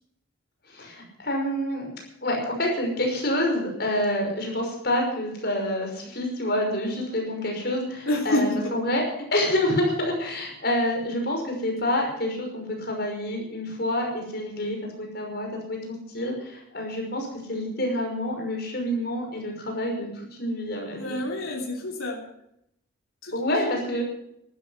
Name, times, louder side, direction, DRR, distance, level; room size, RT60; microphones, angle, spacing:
voice 1, 0.7-9.0 9.3-21.2 23.3-24.0, left 1 dB, 50° left, 1 dB, 5.7 m, -28 dB
voice 2, 8.1-8.7 20.9-22.2 23.2-23.7, left 1 dB, 80° left, -1 dB, 3.2 m, -28 dB
14.5 x 13.0 x 5.8 m, 0.76 s
head